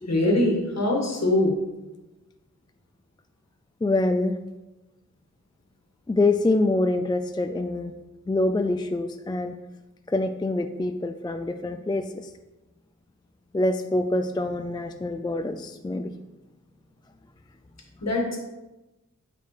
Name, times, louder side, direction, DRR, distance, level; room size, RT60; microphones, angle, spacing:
voice 1, 0.1-1.6 18.0-18.4, left 1 dB, 55° left, -1 dB, 1.7 m, -22 dB
voice 2, 3.8-4.4 6.1-7.9 8.2-9.6 10.1-12.3 13.5-16.1, left 2 dB, 15° left, 7 dB, 0.3 m, -25 dB
9.0 x 5.0 x 3.3 m, 1.1 s
wide cardioid pair, 90°, 32 cm